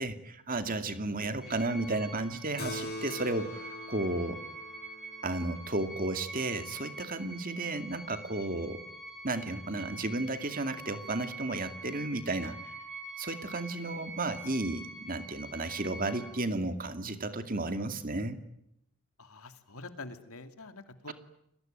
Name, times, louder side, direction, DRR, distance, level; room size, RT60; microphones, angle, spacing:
voice 1, 0.0-4.4 5.2-8.8 9.2-12.7 13.2-18.4 21.1-21.2, right 2 dB, 40° right, 8 dB, 2.4 m, -33 dB
sound 1, 1.4-16.3, right 2 dB, ahead, 4.4 m, -45 dB
Keyboard (musical), 2.6-7.5, left 1 dB, 45° left, 6.5 m, -44 dB
voice 2, 19.2-21.1, left 3 dB, 75° left, 8 dB, 2.8 m, -46 dB
30.0 x 21.5 x 9.2 m, 0.77 s
head